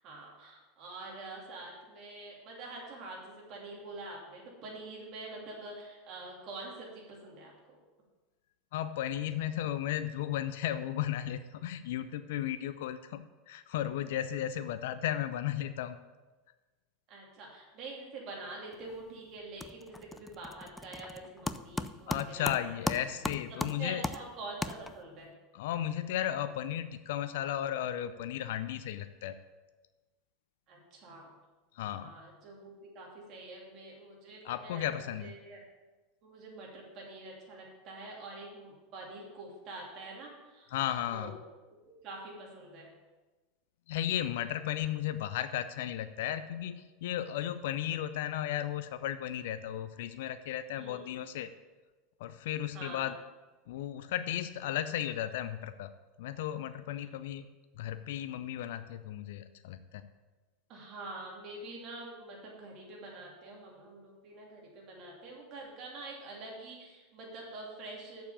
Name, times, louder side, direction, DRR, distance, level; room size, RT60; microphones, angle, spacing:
voice 1, 0.0-7.8 17.1-22.9 23.8-25.3 30.7-31.3 31.9-35.6 36.2-40.7 41.1-41.3 42.0-42.9 50.8-51.1 52.7-53.1 60.7-68.2, right 2 dB, 50° right, -2 dB, 2.9 m, -46 dB
voice 2, 8.7-16.0 22.1-24.0 25.5-29.4 31.7-32.1 34.4-35.3 40.7-41.4 43.9-51.5 52.2-53.2 53.7-55.9 56.2-57.5 57.8-60.0, left 11 dB, 70° left, 11 dB, 0.4 m, -35 dB
sound 1, 18.7-19.1 19.4-25.2, left 2 dB, 10° left, 0.4 m, -38 dB
6.9 x 5.6 x 7.0 m, 1.2 s
hypercardioid pair, 90°, 0 cm